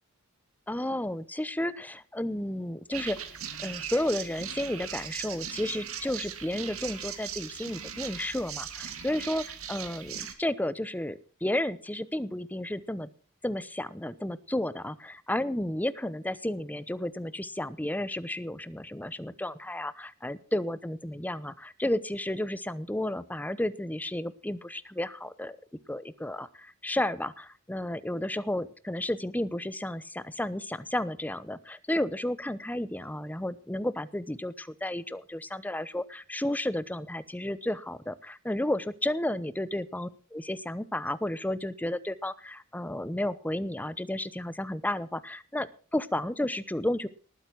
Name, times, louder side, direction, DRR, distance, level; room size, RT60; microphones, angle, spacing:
voice 1, 0.7-3.2 3.6-13.1 13.4-25.6 25.9-47.1, left 1 dB, 10° left, 16 dB, 0.8 m, -32 dB
sound 1, 2.9-10.3, right 9 dB, 75° right, 2.3 m, -39 dB
19.0 x 9.1 x 6.1 m, 0.39 s
head